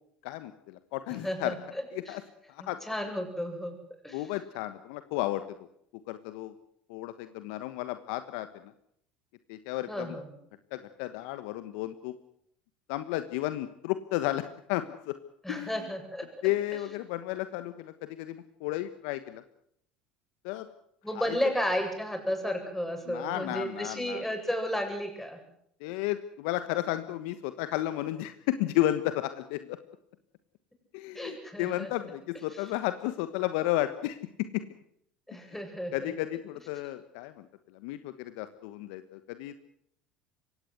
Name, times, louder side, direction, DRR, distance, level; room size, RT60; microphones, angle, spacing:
voice 1, 0.2-1.6 1.9-2.2 2.5-2.8 4.1-5.4 6.1-6.5 6.9-8.7 9.5-10.2 10.7-12.1 12.9-15.2 15.5-15.9 16.4-19.4 20.4-20.7 21.1-21.4 23.1-24.2 25.8-29.8 30.9-34.6 35.5-35.6 35.9-39.6, left 15 dB, 70° left, 11 dB, 1.2 m, -33 dB
voice 2, 1.2-1.5 2.1-2.2 2.6-3.7 4.0-4.2 9.9-10.3 15.4-16.3 16.7-16.8 21.0-25.4 31.1-31.9 35.3-36.1, equal, 5° left, 4 dB, 7.9 m, -33 dB
23.5 x 17.5 x 8.0 m, 0.70 s
hypercardioid pair, 75°, 5 cm